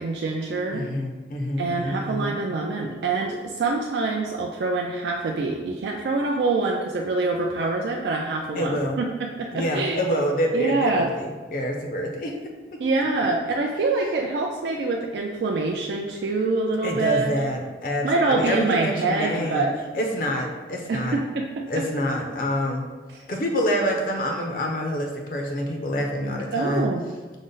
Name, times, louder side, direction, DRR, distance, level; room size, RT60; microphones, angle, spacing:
voice 1, 0.0-0.9 1.6-10.0 10.5-11.1 12.8-17.3 18.0-19.7 20.9-21.6 23.1-23.2 26.5-27.0, right 3 dB, 70° right, 1 dB, 0.3 m, -25 dB
voice 2, 0.7-2.4 8.6-9.0 9.5-12.3 12.7-13.3 16.8-19.7 19.9-21.2 21.7-22.9 23.3-26.9, equal, 50° left, 2 dB, 0.5 m, -27 dB
5.1 x 2.0 x 3.8 m, 1.3 s
head